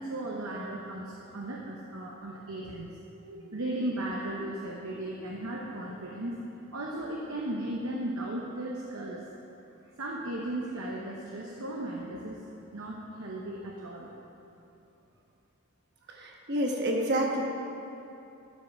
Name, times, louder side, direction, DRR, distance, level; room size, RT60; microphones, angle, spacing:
voice 1, 0.0-6.4 6.7-9.2 10.0-12.4 12.7-14.1, right 1 dB, 70° right, -3 dB, 0.9 m, -36 dB
voice 2, 16.1-17.4, right 1 dB, 50° right, 0 dB, 1.2 m, -28 dB
12.5 x 5.6 x 5.8 m, 2.9 s
head